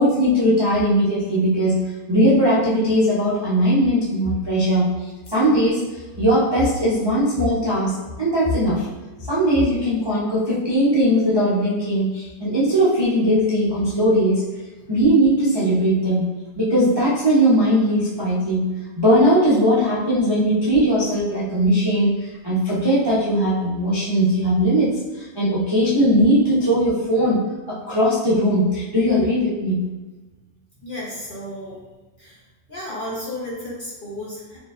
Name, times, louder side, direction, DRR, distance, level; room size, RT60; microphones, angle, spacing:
voice 1, 0.0-4.9 5.3-5.8 6.2-8.9 9.3-14.4 14.9-16.2 16.6-24.9 25.1-29.8, equal, 40° right, -9 dB, 0.3 m, -19 dB
voice 2, 30.8-31.8 32.2-32.4 32.7-34.6, left 1 dB, 45° left, -6 dB, 0.7 m, -33 dB
4.4 x 3.1 x 2.4 m, 1.2 s
omnidirectional pair, 1.9 m